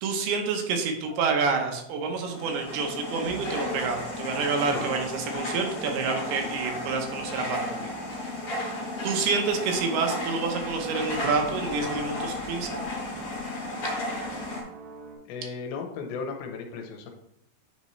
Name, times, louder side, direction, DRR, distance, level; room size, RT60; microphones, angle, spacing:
voice 1, 0.0-7.9 8.2-8.3 9.0-12.7, right 5 dB, 80° right, 3 dB, 2.9 m, -28 dB
sound 1, 1.0-15.2, right 3 dB, 60° right, 2.1 m, -47 dB
sound 2, 2.2-14.6, left 1 dB, 40° left, 2.9 m, -33 dB
voice 2, 15.3-17.1, left 5 dB, 80° left, 2 dB, 2.7 m, -36 dB
9.4 x 4.2 x 3.2 m, 0.77 s
omnidirectional pair, 4.5 m